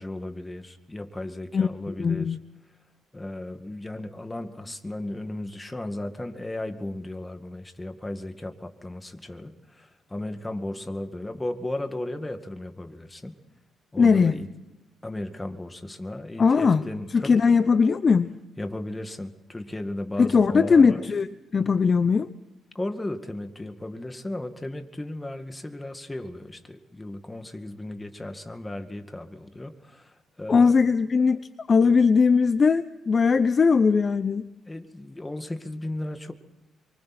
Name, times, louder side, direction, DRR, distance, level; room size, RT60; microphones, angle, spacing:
voice 1, 0.0-2.4 3.1-13.3 13.9-14.5 15.0-17.6 18.6-21.0 22.7-30.9 34.7-36.3, left 1 dB, 15° left, 7 dB, 2.1 m, -35 dB
voice 2, 1.5-2.4 14.0-14.3 16.4-16.8 17.1-18.3 20.2-21.3 21.5-22.3 30.5-31.4 31.7-34.4, left 5 dB, 40° left, 13 dB, 0.7 m, -20 dB
27.0 x 24.5 x 4.4 m, 0.96 s
cardioid pair, 90°, 0 cm